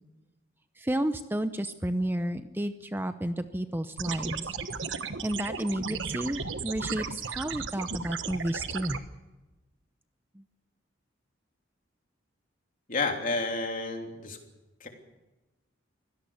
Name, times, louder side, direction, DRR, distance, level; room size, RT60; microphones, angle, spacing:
voice 1, 0.8-4.6 5.2-9.0 10.3-10.4, right 1 dB, 10° right, 9 dB, 0.7 m, -31 dB
sound 1, 4.0-9.0, right 5 dB, 75° right, 1.3 m, -35 dB
voice 2, 12.9-14.4 14.8-14.9, left 3 dB, 45° left, 3 dB, 3.2 m, -30 dB
24.5 x 17.0 x 7.0 m, 1.1 s
head